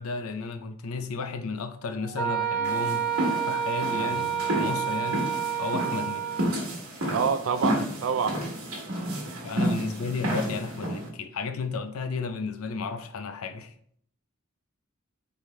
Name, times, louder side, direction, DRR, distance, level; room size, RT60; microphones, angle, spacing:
voice 1, 0.0-3.1 3.5-5.3 5.6-6.4 7.6-7.8 9.4-13.7, left 4 dB, 80° left, 0.5 m, -33 dB
sound 1, 1.9-7.1, right 1 dB, 50° right, 0.8 m, -45 dB
Wind instrument woodwind instrument, 2.2-6.5, right 9 dB, 20° left, 0.7 m, -29 dB
sound 2, 2.6-11.1, equal, 90° right, 1.4 m, -31 dB
voice 2, 7.1-8.4 9.2-9.5, right 6 dB, 65° right, 0.4 m, -27 dB
4.6 x 3.4 x 3.1 m
head